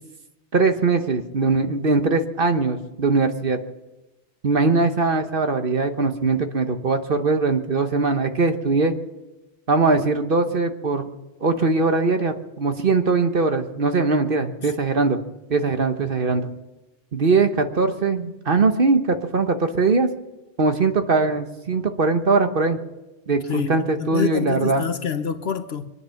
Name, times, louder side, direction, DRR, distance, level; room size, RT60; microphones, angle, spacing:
voice 1, 0.5-3.6 4.4-8.9 9.7-11.1 11.4-15.2 15.5-16.5 17.1-20.1 20.6-22.8 23.3-24.8, right 3 dB, 50° right, 1.3 m, -21 dB
voice 2, 24.0-25.9, left 6 dB, 60° left, 1.1 m, -26 dB
24.5 x 9.8 x 5.8 m
omnidirectional pair, 1.2 m